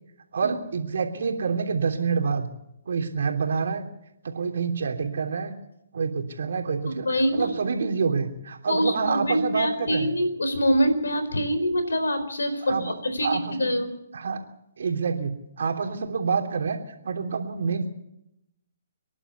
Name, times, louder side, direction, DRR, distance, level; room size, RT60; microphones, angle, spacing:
voice 1, 0.3-2.5 2.8-3.9 4.2-5.5 5.9-7.1 7.3-10.1 12.7-12.9 13.2-13.7 14.1-14.4 14.8-16.8 17.0-17.9, right 5 dB, 70° right, 4 dB, 3.2 m, -27 dB
voice 2, 6.9-7.5 8.7-13.9, equal, 85° left, 10 dB, 4.3 m, -25 dB
25.5 x 11.0 x 9.6 m, 0.83 s
hypercardioid pair, 140°, 0 cm